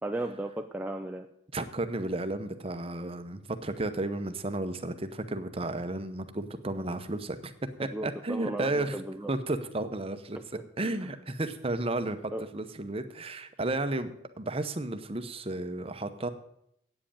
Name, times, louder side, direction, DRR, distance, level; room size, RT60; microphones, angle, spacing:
voice 1, 0.0-1.3 7.9-9.3 12.3-12.5, right 1 dB, 10° right, 3 dB, 0.4 m, -35 dB
voice 2, 1.5-9.0 9.3-10.4 10.8-16.3, right 2 dB, 30° right, 9 dB, 0.8 m, -33 dB
8.9 x 7.6 x 8.6 m, 0.77 s
head